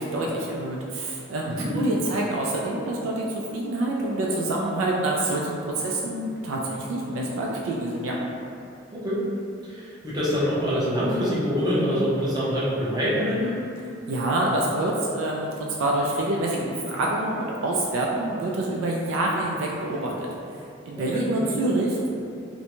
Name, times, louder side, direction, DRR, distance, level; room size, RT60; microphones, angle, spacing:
voice 1, 0.0-3.3 3.5-8.2 13.8-20.3 20.5-22.1, right 1 dB, 70° right, -2 dB, 0.3 m, -27 dB
voice 2, 1.4-1.8 8.9-9.2 9.6-13.6 21.0-21.5, equal, 20° right, -10 dB, 0.7 m, -25 dB
2.5 x 2.1 x 2.9 m, 2.5 s
head